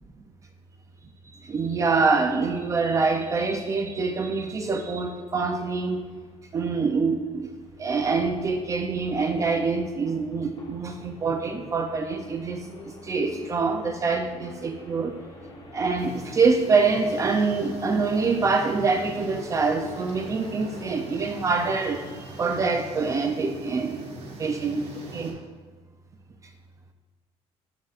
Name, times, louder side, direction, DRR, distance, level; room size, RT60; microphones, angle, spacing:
voice 1, 1.5-6.0 6.5-7.5 7.8-12.6 13.0-15.2 15.7-22.0 22.4-24.1 24.4-25.4, right 4 dB, 25° right, 5 dB, 0.4 m, -25 dB
sound 1, 4.3-21.0, left 2 dB, 45° left, 1.8 m, -47 dB
sound 2, 16.0-25.3, right 2 dB, 60° right, 1.5 m, -41 dB
8.9 x 7.2 x 2.4 m, 1.4 s
cardioid pair, 155°, 12 cm